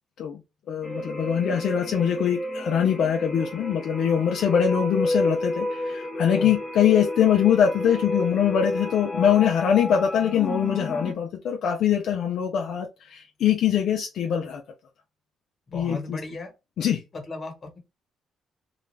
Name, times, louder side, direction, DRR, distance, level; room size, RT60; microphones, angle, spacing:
voice 1, 0.7-14.6 15.7-16.2 16.8-17.0, left 9 dB, 70° left, 0.4 m, -23 dB
sound 1, 0.8-11.1, left 1 dB, 20° left, 0.6 m, -30 dB
voice 2, 15.7-16.5 17.1-17.8, left 3 dB, 40° left, 1.2 m, -36 dB
2.4 x 2.1 x 3.1 m
cardioid pair, 90°, 0 cm